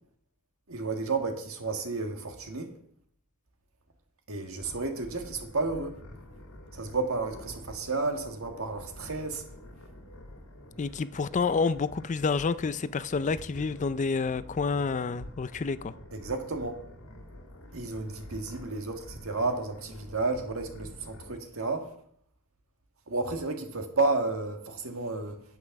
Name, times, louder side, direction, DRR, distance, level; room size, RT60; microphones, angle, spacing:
voice 1, 0.7-2.7 4.3-5.9 6.7-9.4 16.1-16.8 17.7-21.9 23.1-25.4, right 3 dB, 70° right, 4 dB, 1.8 m, -32 dB
sound 1, 4.6-21.3, left 1 dB, 80° left, 2.1 m, -48 dB
voice 2, 10.8-15.9, left 4 dB, 35° left, 15 dB, 0.4 m, -29 dB
9.8 x 8.6 x 5.9 m, 0.67 s
head